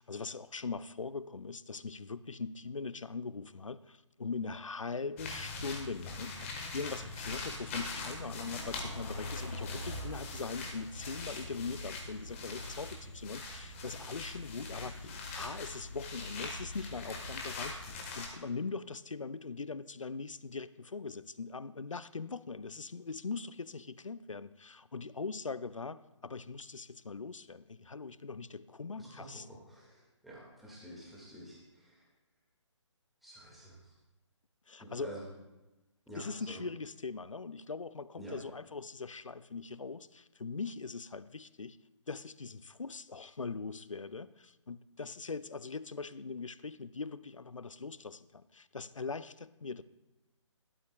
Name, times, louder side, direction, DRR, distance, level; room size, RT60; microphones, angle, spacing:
voice 1, 0.0-29.5 34.7-35.1 36.1-41.8 42.1-49.8, left 4 dB, 80° left, 17 dB, 0.5 m, -41 dB
sound 1, 5.2-18.3, left 2 dB, 25° left, 1.3 m, -41 dB
voice 2, 29.0-32.0 33.2-33.9 34.8-35.3 36.1-36.6 38.2-38.4, right 1 dB, ahead, -6 dB, 1.8 m, -49 dB
12.5 x 11.0 x 2.2 m, 1.0 s
figure-of-eight pair, 140°, 16 cm